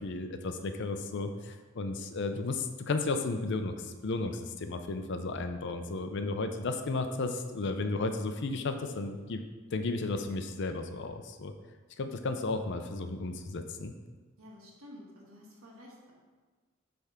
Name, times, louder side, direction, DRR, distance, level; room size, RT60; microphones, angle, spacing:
voice 1, 0.0-9.4 9.7-11.5 12.0-13.9, left 3 dB, 55° left, 7 dB, 0.5 m, -34 dB
voice 2, 14.4-16.1, left 1 dB, 80° right, -3 dB, 1.5 m, -51 dB
8.2 x 3.4 x 5.6 m, 1.3 s
head